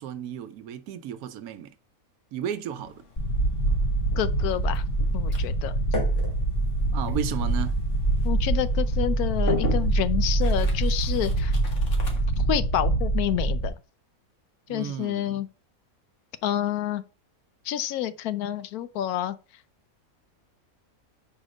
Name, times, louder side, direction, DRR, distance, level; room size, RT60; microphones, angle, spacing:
voice 1, 0.0-1.7 2.3-3.0 6.9-7.8 14.7-15.4, right 9 dB, 85° right, 1.2 m, -33 dB
sound 1, 2.7-12.5, left 3 dB, 55° left, 1.7 m, -38 dB
sound 2, 3.2-13.7, right 2 dB, 40° left, 0.8 m, -25 dB
voice 2, 4.2-4.8 5.1-5.7 8.2-11.5 12.5-13.7 14.7-15.5 16.4-17.0 17.6-19.4, left 11 dB, 85° left, 1.1 m, -28 dB
4.9 x 4.2 x 5.1 m
omnidirectional pair, 1.5 m